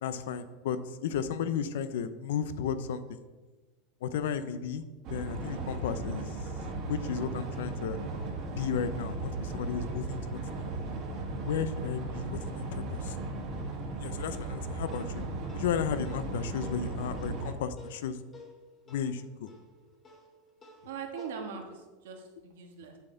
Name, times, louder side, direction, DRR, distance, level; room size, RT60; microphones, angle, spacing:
voice 1, 0.0-3.2 4.0-4.8 5.1-6.3 6.9-8.0 8.6-10.4 11.4-13.1 14.0-15.2 15.5-18.2 18.9-19.5, left 7 dB, 80° left, 12 dB, 0.7 m, -34 dB
sound 1, 5.0-17.5, right 2 dB, 35° right, 1.5 m, -36 dB
sound 2, 9.3-17.4, right 6 dB, 55° left, 3.1 m, -53 dB
sound 3, 14.3-21.3, left 2 dB, 15° left, 1.3 m, -54 dB
voice 2, 20.8-23.0, right 6 dB, 90° right, 4 dB, 1.5 m, -41 dB
9.3 x 7.1 x 3.9 m, 1.2 s
supercardioid pair, 170°, 0 cm